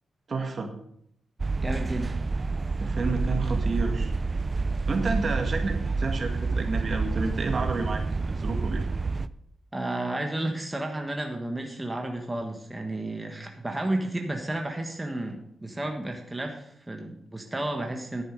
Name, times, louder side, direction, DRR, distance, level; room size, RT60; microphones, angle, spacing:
voice 1, 0.3-0.7 2.8-4.1 4.9-8.8, right 3 dB, 45° right, 4 dB, 1.8 m, -30 dB
sound 1, 1.4-9.3, right 3 dB, 30° right, 0.4 m, -28 dB
voice 2, 1.6-2.2 9.7-18.2, right 1 dB, 15° right, 2 dB, 1.4 m, -32 dB
10.5 x 9.3 x 5.3 m, 0.72 s
cardioid pair, 110°, 0 cm